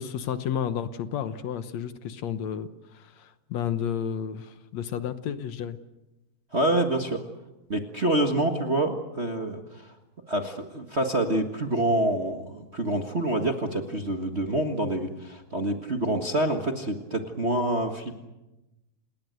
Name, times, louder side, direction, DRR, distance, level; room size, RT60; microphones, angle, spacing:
voice 1, 0.0-2.7 3.2-5.8, left 8 dB, 70° left, 11 dB, 2.2 m, -31 dB
voice 2, 6.5-7.2 7.7-9.8 10.3-18.2, right 1 dB, 30° right, 4 dB, 1.4 m, -27 dB
28.5 x 20.0 x 8.0 m, 1.0 s
omnidirectional pair, 3.3 m